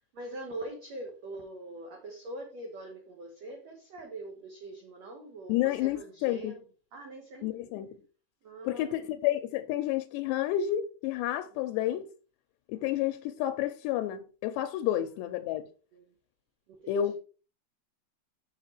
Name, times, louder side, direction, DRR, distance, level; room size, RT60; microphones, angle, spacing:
voice 1, 0.1-6.6 6.9-7.7 8.4-9.0 11.8-11.9 15.9-16.1 16.7-17.1, right 1 dB, 70° right, 1.6 m, -43 dB
voice 2, 5.5-6.5 7.4-7.9 8.7-12.1 12.7-15.7 16.9-17.2, left 12 dB, 85° left, 2.7 m, -30 dB
7.4 x 6.8 x 4.5 m
omnidirectional pair, 5.1 m